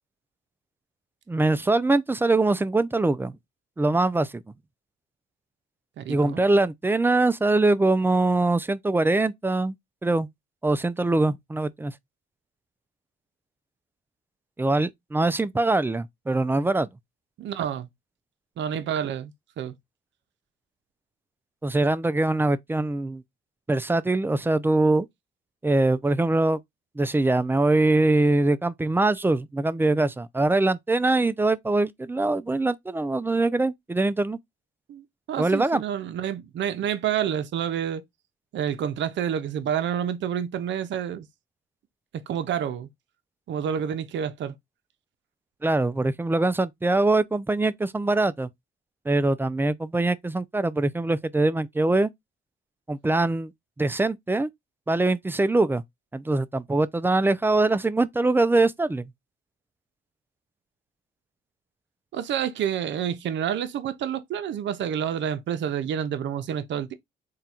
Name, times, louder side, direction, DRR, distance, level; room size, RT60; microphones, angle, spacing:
voice 1, 1.3-3.3 3.8-4.4 6.1-9.7 10.0-10.3 10.6-11.9 14.6-16.9 21.6-23.2 23.7-25.1 25.6-26.6 27.0-34.4 35.4-35.8 45.6-48.5 49.1-52.1 52.9-53.5 53.8-54.5 54.9-55.8 56.1-59.0, right 2 dB, 10° right, 0.3 m, -23 dB
voice 2, 6.0-6.4 17.4-17.9 18.6-19.7 34.9-38.0 38.5-41.3 42.3-42.9 43.5-44.5 62.1-66.9, right 9 dB, 65° right, 0.7 m, -29 dB
3.7 x 2.3 x 4.2 m
cardioid pair, 90°, 20 cm